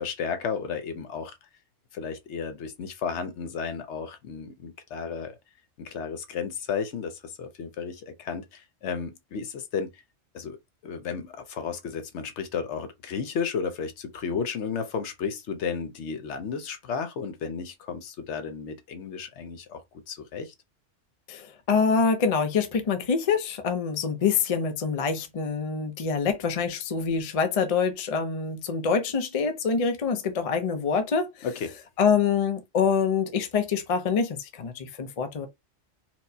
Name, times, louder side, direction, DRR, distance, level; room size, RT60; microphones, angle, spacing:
voice 1, 0.0-1.3 1.9-5.4 5.8-10.0 10.3-10.6 10.8-19.8 20.1-20.5 31.4-31.7, left 6 dB, 75° left, 0.9 m, -33 dB
voice 2, 21.3-31.3 32.0-35.5, left 5 dB, 40° left, 0.5 m, -25 dB
4.4 x 2.1 x 2.7 m
omnidirectional pair, 1.2 m